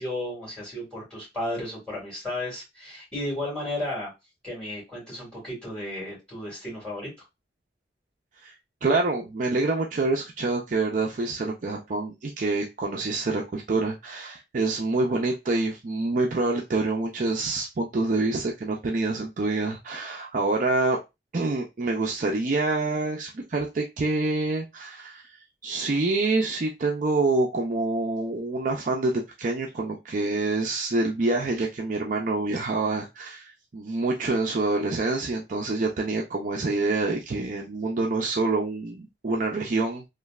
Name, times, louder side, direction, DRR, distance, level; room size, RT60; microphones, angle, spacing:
voice 1, 0.0-4.1 4.4-7.1, left 1 dB, 5° left, -4 dB, 1.9 m, -33 dB
voice 2, 8.8-21.0 21.3-25.3 25.6-40.1, right 3 dB, 45° right, 0 dB, 0.4 m, -26 dB
3.1 x 2.5 x 2.3 m, 0.23 s
head